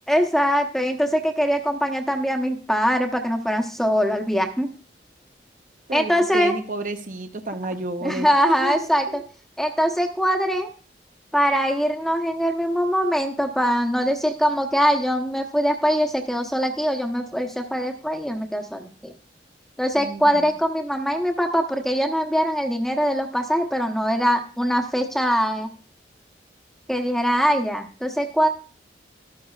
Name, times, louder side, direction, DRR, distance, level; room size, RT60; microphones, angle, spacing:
voice 1, 0.1-4.7 5.9-6.5 8.0-9.1 9.6-10.7 11.3-19.1 19.8-25.7 26.9-28.5, equal, ahead, 4 dB, 0.9 m, -22 dB
voice 2, 5.9-9.2 20.0-20.4, right 2 dB, 45° right, 7 dB, 0.7 m, -31 dB
13.0 x 12.5 x 2.4 m, 0.40 s
head